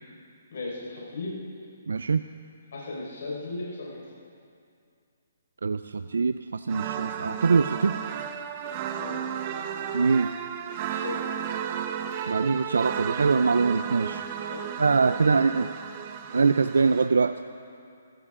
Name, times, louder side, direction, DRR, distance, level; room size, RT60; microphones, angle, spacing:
voice 1, 0.5-1.4 2.7-4.0 8.9-9.2 10.9-11.2 14.5-14.7, left 2 dB, 70° left, -5 dB, 4.7 m, -36 dB
voice 2, 1.9-2.2 5.6-8.0 9.9-10.3 12.3-14.2 14.8-15.7 16.3-17.4, right 4 dB, 90° right, 11 dB, 0.4 m, -23 dB
sound 1, 6.7-17.1, right 8 dB, 35° right, 0.8 m, -34 dB
20.5 x 15.0 x 3.7 m, 2.4 s
hypercardioid pair, 155°, 0 cm